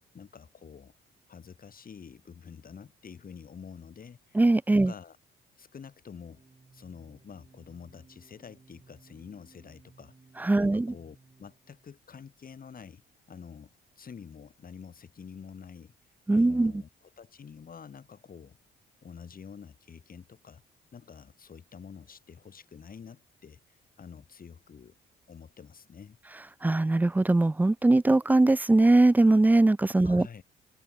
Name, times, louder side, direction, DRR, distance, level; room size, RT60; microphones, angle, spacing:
voice 1, 0.1-0.9 1.3-4.4 4.7-5.2 5.6-6.4 6.7-10.1 10.5-13.0 13.3-15.9 16.3-18.6 19.0-20.6 20.9-25.0 25.3-26.2 30.0-30.4, left 6 dB, 45° left, 6.3 m, -48 dB
voice 2, 4.4-4.9 10.4-10.9 16.3-16.7 26.6-30.3, right 2 dB, 10° right, 0.4 m, -21 dB
sound 1, 6.2-11.9, right 4 dB, 25° right, 5.8 m, -59 dB
cardioid pair, 90°, 20 cm